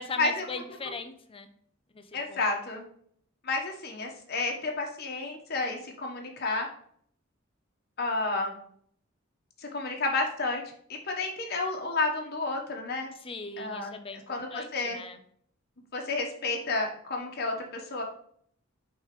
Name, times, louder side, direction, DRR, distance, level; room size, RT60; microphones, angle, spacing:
voice 1, 0.0-1.5 1.9-2.0 2.3-2.4 13.2-15.2, left 3 dB, 30° left, 9 dB, 0.5 m, -39 dB
voice 2, 2.1-2.8 3.4-6.7 8.0-8.5 9.6-10.6 10.9-13.1 13.6-13.9 14.3-15.0 15.9-18.0, left 3 dB, 50° left, 2 dB, 1.2 m, -31 dB
5.5 x 3.9 x 5.0 m, 0.63 s
head